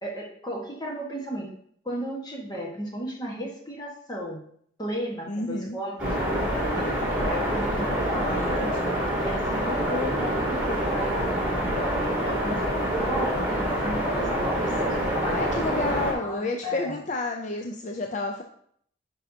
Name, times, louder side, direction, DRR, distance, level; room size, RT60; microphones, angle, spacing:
voice 1, 0.0-1.5 1.8-4.4 4.8-7.0 7.3-8.9 9.2-15.8 16.1-17.0, equal, 20° left, -2 dB, 1.4 m, -35 dB
voice 2, 5.3-5.8 8.2-8.9 15.2-18.4, left 2 dB, 40° left, 3 dB, 0.5 m, -31 dB
sound 1, 6.0-16.1, equal, 10° right, 2.6 m, -26 dB
9.2 x 5.5 x 2.8 m, 0.65 s
head